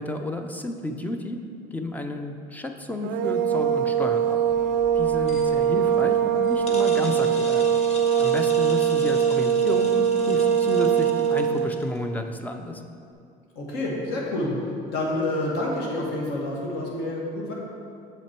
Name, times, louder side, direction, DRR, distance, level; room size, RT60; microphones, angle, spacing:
voice 1, 0.0-1.4 1.7-4.4 4.9-7.7 8.2-12.8, left 2 dB, 10° left, 6 dB, 0.4 m, -31 dB
sound 1, 3.0-11.7, right 8 dB, 80° right, 0.4 m, -22 dB
sound 2, 4.5-12.0, left 2 dB, 35° left, 1.0 m, -42 dB
voice 2, 13.6-14.5 14.9-17.5, left 1 dB, 70° left, -3 dB, 1.9 m, -28 dB
7.4 x 5.9 x 4.4 m, 2.4 s
cardioid pair, 155°, 18 cm